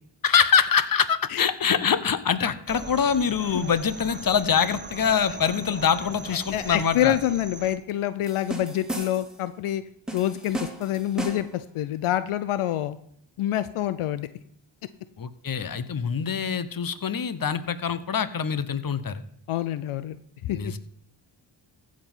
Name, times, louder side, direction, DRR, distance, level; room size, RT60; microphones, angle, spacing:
voice 1, 0.2-7.2 15.2-19.2 20.5-20.8, left 7 dB, 45° left, 13 dB, 1.0 m, -24 dB
sound 1, 2.7-7.8, right 3 dB, 20° right, 1.2 m, -40 dB
voice 2, 6.5-9.8 10.1-13.0 13.4-14.3 19.5-20.2 20.5-20.7, left 12 dB, 80° left, 14 dB, 0.6 m, -26 dB
sound 2, 8.3-9.4 10.1-11.6, right 2 dB, ahead, 2.1 m, -35 dB
15.0 x 5.2 x 5.6 m, 0.66 s
cardioid pair, 60°, 49 cm